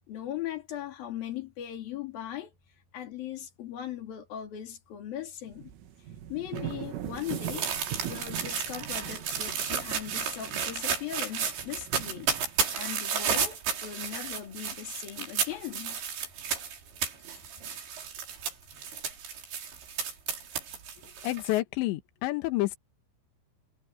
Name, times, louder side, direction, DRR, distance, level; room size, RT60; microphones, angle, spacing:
voice 1, 0.1-2.5 2.9-5.7 6.3-7.7 8.0-16.0, left 11 dB, 55° left, 4.3 m, -39 dB
sound 1, 5.5-13.0, right 12 dB, 85° right, 4.4 m, -41 dB
sound 2, 6.6-21.6, right 7 dB, 65° right, 6.3 m, -33 dB
voice 2, 21.2-22.8, left 17 dB, 75° left, 3.4 m, -29 dB
omnidirectional pair, 5.5 m